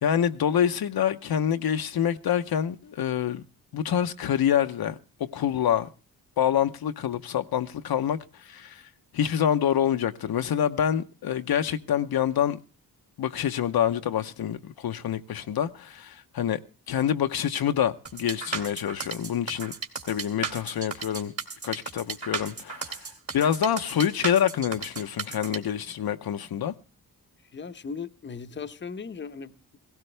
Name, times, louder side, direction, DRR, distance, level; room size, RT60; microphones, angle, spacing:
voice 1, 0.0-3.4 3.7-5.9 6.4-8.8 9.1-12.6 13.2-16.6 16.9-19.7 20.1-21.3 21.6-23.0 23.3-26.7, left 9 dB, 75° left, 0.8 m, -26 dB
sound 1, 18.1-25.6, right 4 dB, 40° right, 2.1 m, -34 dB
voice 2, 27.5-29.8, left 5 dB, 30° left, 0.8 m, -38 dB
17.0 x 17.0 x 3.3 m
wide cardioid pair, 140°, 37 cm